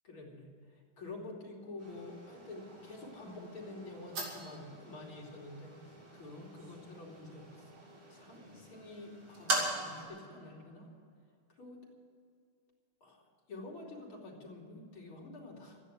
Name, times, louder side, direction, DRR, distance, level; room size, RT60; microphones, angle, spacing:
voice 1, 0.0-7.6 8.1-10.9 11.6-11.9 13.0-13.2 13.5-15.8, left 2 dB, 70° left, -2 dB, 3.7 m, -48 dB
sound 1, 1.8-10.0, right 2 dB, 70° right, 3.3 m, -41 dB
13.5 x 9.9 x 9.4 m, 2.3 s
omnidirectional pair, 2.4 m